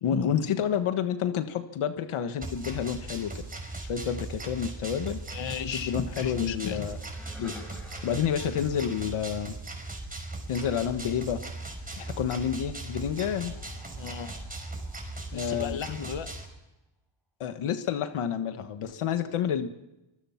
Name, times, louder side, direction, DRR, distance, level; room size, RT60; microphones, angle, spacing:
voice 1, 0.0-3.4 3.9-5.2 5.7-7.0 7.4-7.5 8.0-9.5 10.5-11.4 12.0-13.5 15.3-16.0 17.4-19.7, left 8 dB, 80° left, 8 dB, 1.5 m, -29 dB
sound 1, 2.4-16.5, right 2 dB, 15° right, 5.5 m, -38 dB
voice 2, 5.3-6.9 8.4-8.5 14.0-14.3 15.3-16.3, left 8 dB, 65° left, 9 dB, 1.6 m, -34 dB
sound 2, 6.5-10.1 11.5-16.1, equal, ahead, 6.8 m, -53 dB
24.5 x 23.5 x 5.8 m, 0.98 s
cardioid pair, 120°, 49 cm